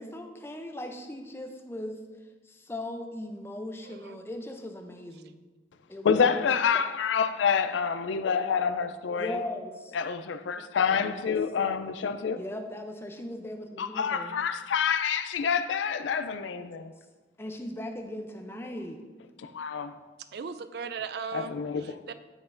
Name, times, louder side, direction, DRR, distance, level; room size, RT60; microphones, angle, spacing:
voice 1, 0.0-2.0 2.5-5.4 5.9-6.5 9.2-9.9 10.9-11.3 12.4-14.3 17.4-19.0, left 1 dB, 15° left, 0.5 m, -38 dB
voice 2, 3.9-4.2 20.3-22.1, right 6 dB, 55° right, 0.3 m, -38 dB
voice 3, 6.0-9.3 9.9-12.4 13.8-16.9 19.4-19.9 21.3-21.9, left 6 dB, 85° left, 0.4 m, -27 dB
8.1 x 6.0 x 2.5 m
head